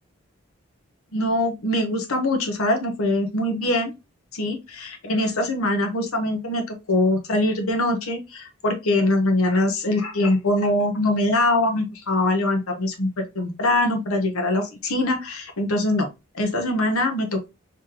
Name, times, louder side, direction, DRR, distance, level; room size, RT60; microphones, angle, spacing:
voice 1, 1.1-3.9 4.3-16.1 16.3-17.5, left 1 dB, 85° left, 1.0 m, -23 dB
3.7 x 3.1 x 2.9 m
head